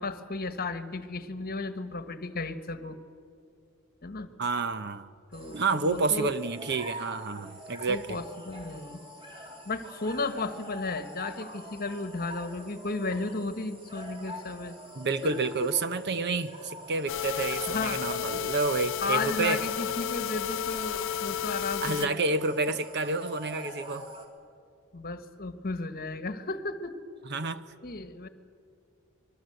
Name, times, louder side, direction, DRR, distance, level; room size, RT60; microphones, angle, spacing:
voice 1, 0.0-3.0 4.0-4.3 5.3-6.3 7.9-9.0 9.6-14.7 15.2-15.3 15.6-15.7 17.7-18.1 19.0-22.2 24.9-26.9 27.8-28.3, left 3 dB, 40° left, 10 dB, 1.3 m, -34 dB
voice 2, 4.4-5.1 5.5-8.2 15.0-19.6 21.8-24.1 27.3-27.6, right 3 dB, 50° right, 12 dB, 0.8 m, -29 dB
sound 1, 5.3-24.3, right 1 dB, 25° right, 3.0 m, -45 dB
sound 2, 17.1-22.1, left 10 dB, 60° left, 0.5 m, -32 dB
25.5 x 21.5 x 7.9 m, 2.5 s
head